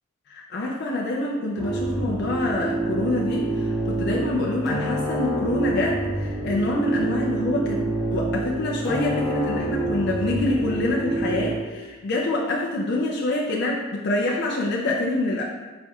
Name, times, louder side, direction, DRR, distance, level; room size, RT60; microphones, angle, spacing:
voice 1, 0.3-15.4, left 2 dB, 60° left, -2 dB, 0.4 m, -26 dB
sound 1, 1.6-11.6, right 2 dB, ahead, 0.9 m, -27 dB
4.3 x 4.3 x 2.3 m, 1.3 s
head